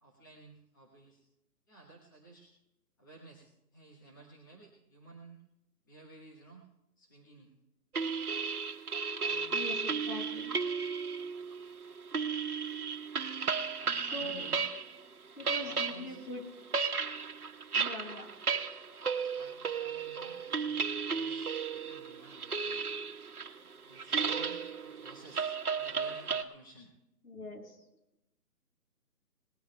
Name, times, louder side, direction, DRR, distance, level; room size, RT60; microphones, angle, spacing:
voice 1, 0.0-1.2 1.7-2.5 3.0-5.4 5.8-6.7 7.0-7.5 9.2-9.6 10.1-10.2 13.8-14.7 15.4-16.2 19.1-22.8 23.8-26.9, right 3 dB, 15° left, -4 dB, 1.1 m, -54 dB
sound 1, 7.9-15.0 15.2-26.4, right 5 dB, 65° right, 1.3 m, -34 dB
voice 2, 9.5-10.6 14.1-14.4 15.4-16.4 17.8-18.3 27.2-27.8, left 1 dB, 70° left, 0 dB, 6.9 m, -42 dB
25.5 x 19.5 x 2.3 m, 0.88 s
hypercardioid pair, 170°, 48 cm